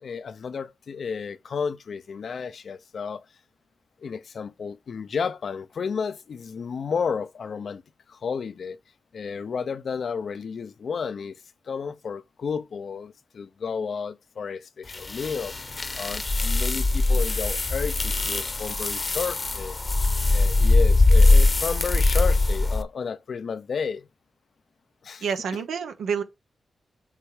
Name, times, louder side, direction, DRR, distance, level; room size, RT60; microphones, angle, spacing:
voice 1, 0.0-3.2 4.0-7.8 8.1-8.8 9.1-15.5 15.9-19.8 20.3-24.1 25.0-25.2, left 6 dB, 70° left, 0.7 m, -32 dB
sound 1, 14.9-22.8, left 2 dB, 40° left, 1.0 m, -21 dB
voice 2, 25.2-26.2, right 6 dB, 90° right, 1.0 m, -28 dB
7.4 x 3.3 x 5.0 m
cardioid pair, 55°, 0 cm